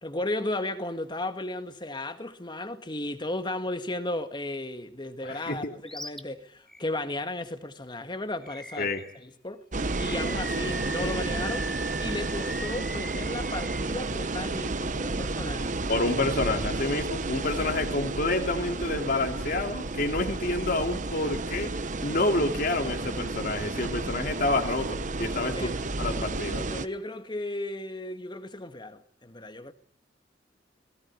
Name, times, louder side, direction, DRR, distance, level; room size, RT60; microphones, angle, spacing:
voice 1, 0.0-8.9 9.2-9.6 10.0-11.7 12.0-15.7 25.4-25.8 26.7-29.7, left 1 dB, 25° left, 1.8 m, -34 dB
voice 2, 5.2-5.7 8.8-9.0 15.9-25.7 26.0-26.7, left 2 dB, 55° left, 2.6 m, -28 dB
Animal, 5.9-6.2 6.7-6.8 8.4-9.2 9.8-13.8, equal, ahead, 1.2 m, -39 dB
sound 1, 9.7-26.9, right 3 dB, 45° right, 1.0 m, -32 dB
19.5 x 18.0 x 9.8 m
head